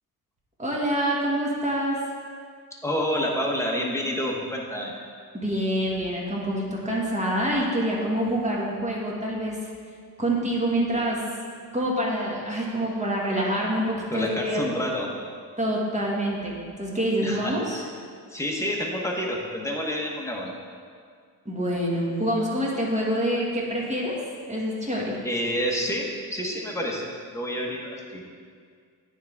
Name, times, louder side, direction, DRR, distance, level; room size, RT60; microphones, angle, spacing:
voice 1, 0.6-2.0 5.3-9.6 10.2-11.2 11.7-14.6 15.6-17.8 21.4-24.1 24.5-25.2, equal, 20° right, -3 dB, 1.6 m, -26 dB
voice 2, 2.8-4.9 14.1-15.1 17.2-17.9 18.3-20.5 25.2-28.3, equal, 10° left, -2 dB, 1.1 m, -29 dB
9.4 x 3.6 x 4.7 m, 2.1 s
cardioid pair, 95°, 37 cm